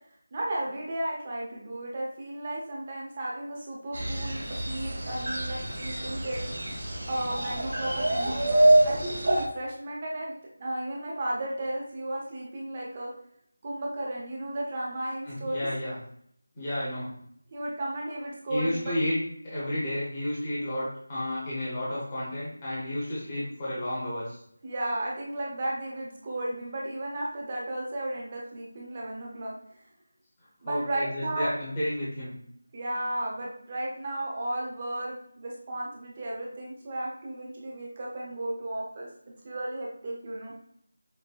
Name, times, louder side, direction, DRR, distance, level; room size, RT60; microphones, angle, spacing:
voice 1, 0.3-6.8 7.1-10.3 10.6-13.1 13.6-15.7 17.5-18.9 24.6-29.5 30.6-31.5 32.7-39.1 39.4-40.5, right 1 dB, 20° right, -3 dB, 0.5 m, -34 dB
sound 1, 3.9-9.4, right 1 dB, 45° right, 1.0 m, -26 dB
voice 2, 15.3-16.0 16.6-17.1 18.5-19.2 19.4-24.4 30.7-32.3, left 1 dB, 15° left, -9 dB, 0.7 m, -31 dB
5.2 x 2.0 x 2.2 m, 0.68 s
figure-of-eight pair, 180°, 0 cm